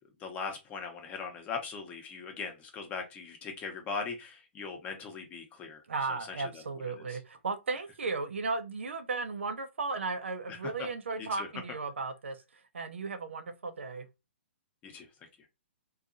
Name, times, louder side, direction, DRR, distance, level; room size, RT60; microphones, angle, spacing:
voice 1, 0.2-6.6 6.9-7.2 10.5-10.9 11.2-11.5 14.8-15.1 15.4-15.5, left 5 dB, 20° left, 0.7 m, -40 dB
voice 2, 5.9-14.1, right 4 dB, 80° right, 0.5 m, -35 dB
2.6 x 2.3 x 2.5 m
hypercardioid pair, 130°, 6 cm